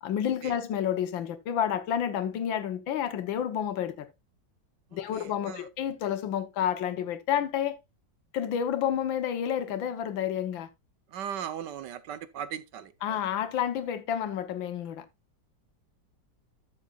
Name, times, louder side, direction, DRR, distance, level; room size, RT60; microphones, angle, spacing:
voice 1, 0.0-4.1 4.9-7.8 8.3-10.7 13.0-15.0, left 9 dB, 85° left, 1.8 m, -30 dB
voice 2, 5.1-5.6 11.1-13.2, right 9 dB, 70° right, 1.4 m, -38 dB
13.5 x 7.0 x 2.4 m
omnidirectional pair, 2.0 m